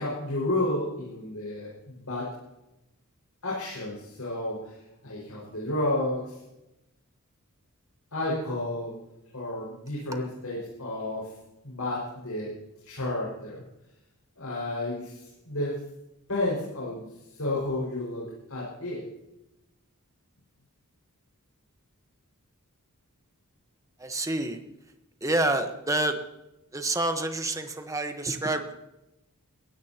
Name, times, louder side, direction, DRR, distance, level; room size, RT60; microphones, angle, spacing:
voice 1, 0.0-2.3 3.4-4.8 5.0-6.3 8.1-8.9 9.3-11.3 11.6-12.5 12.8-13.6 14.4-15.8 16.3-17.0 17.3-19.0, left 1 dB, 85° left, -6 dB, 5.6 m, -31 dB
voice 2, 24.0-24.6 25.2-26.2 26.7-28.7, right 2 dB, 15° right, 6 dB, 1.2 m, -28 dB
21.0 x 16.0 x 3.0 m, 0.93 s
head